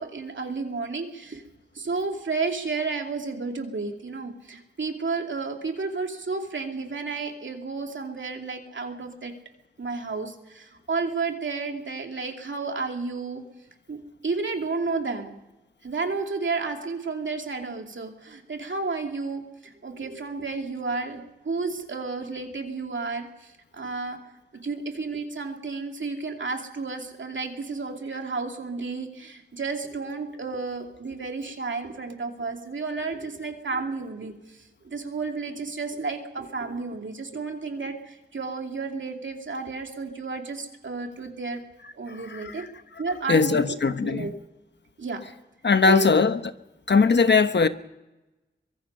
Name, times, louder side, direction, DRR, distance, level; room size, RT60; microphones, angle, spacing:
voice 1, 0.0-1.4 1.7-9.3 9.8-13.4 13.9-14.0 14.2-15.3 15.8-24.2 24.6-41.6 42.0-42.6 43.0-44.3 45.0-45.2 45.9-46.2, right 4 dB, 75° right, 2.6 m, -32 dB
voice 2, 42.1-42.7 43.3-44.3 45.6-46.4 46.9-47.7, left 4 dB, 65° left, 1.0 m, -20 dB
23.5 x 22.0 x 5.5 m
wide cardioid pair, 75°, 20 cm